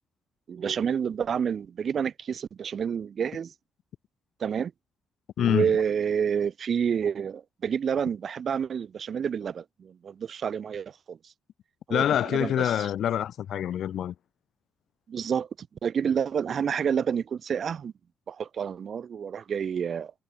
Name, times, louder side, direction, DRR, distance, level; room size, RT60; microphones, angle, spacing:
voice 1, 0.5-3.5 4.4-4.7 5.4-11.3 11.9-12.9 15.1-17.9 18.3-20.1, right 7 dB, 50° right, 1.3 m, -29 dB
voice 2, 5.4-5.7 11.9-14.1, left 10 dB, 70° left, 1.0 m, -26 dB
cardioid pair, 90°, 0 cm